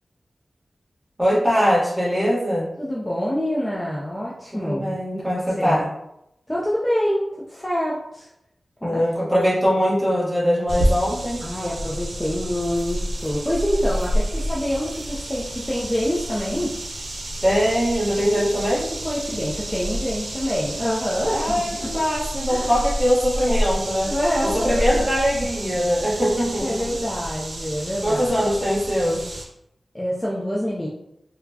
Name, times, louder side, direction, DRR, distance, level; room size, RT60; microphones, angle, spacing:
voice 1, 1.2-2.7 4.5-5.9 8.8-11.4 17.4-18.9 21.3-24.1 24.5-26.9 28.0-29.4, equal, 10° right, -6 dB, 1.2 m, -22 dB
voice 2, 2.8-5.8 6.5-8.3 8.8-9.0 11.4-16.7 18.4-18.5 19.0-21.9 22.5-22.7 23.3-23.6 24.1-25.0 26.6-28.4 29.9-30.9, equal, 15° left, -6 dB, 0.6 m, -26 dB
sound 1, 10.7-29.5, equal, 85° right, 0.6 m, -29 dB
4.1 x 2.2 x 2.8 m, 0.80 s
wide cardioid pair, 100°, 0 cm